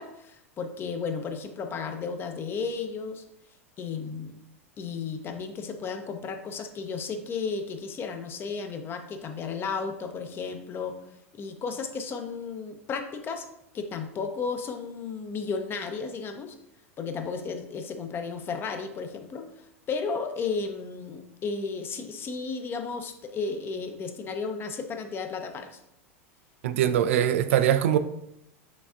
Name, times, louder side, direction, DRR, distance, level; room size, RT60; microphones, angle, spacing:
voice 1, 0.0-3.2 3.8-4.3 4.8-11.0 11.3-13.5 13.7-16.6 17.0-25.8, left 5 dB, 30° left, 0.6 m, -34 dB
voice 2, 26.6-28.0, right 10 dB, 65° right, 0.3 m, -22 dB
6.1 x 3.3 x 2.5 m
hypercardioid pair, 90°, 8 cm